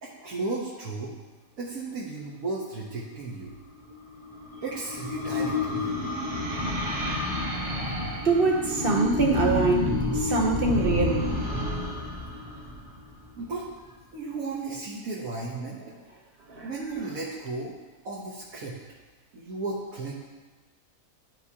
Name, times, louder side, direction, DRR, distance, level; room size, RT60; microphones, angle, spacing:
voice 1, 0.0-1.1 1.6-3.5 4.6-6.0 13.4-13.6 14.1-15.8 16.4-17.7 18.0-18.8 19.3-20.1, right 3 dB, 65° right, -5 dB, 1.5 m, -34 dB
sound 1, 3.9-13.5, left 2 dB, 25° right, 1.2 m, -29 dB
voice 2, 8.2-11.3 16.5-16.7, right 3 dB, 45° right, 1 dB, 0.8 m, -24 dB
12.5 x 4.8 x 2.8 m, 1.3 s
omnidirectional pair, 1.6 m